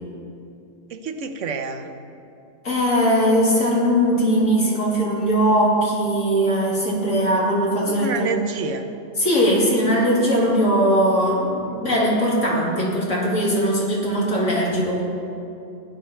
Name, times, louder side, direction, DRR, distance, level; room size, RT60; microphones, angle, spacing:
voice 1, 0.9-1.9 7.0-7.1 7.9-8.9, right 4 dB, 75° right, 8 dB, 1.1 m, -28 dB
voice 2, 2.6-8.4 9.2-15.0, equal, 80° left, -5 dB, 3.2 m, -20 dB
16.5 x 9.8 x 4.5 m, 2.7 s
omnidirectional pair, 1.3 m